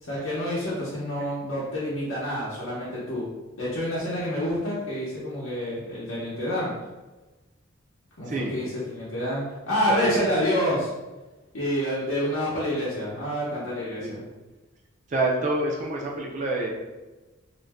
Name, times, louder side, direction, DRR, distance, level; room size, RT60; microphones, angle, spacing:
voice 1, 0.0-3.2 3.6-6.7 8.2-10.9 11.5-14.2, equal, 70° left, -8 dB, 0.7 m, -28 dB
voice 2, 9.9-10.3 14.0-14.2 15.1-16.7, right 2 dB, 35° right, -2 dB, 0.4 m, -27 dB
2.5 x 2.1 x 3.3 m, 1.2 s
head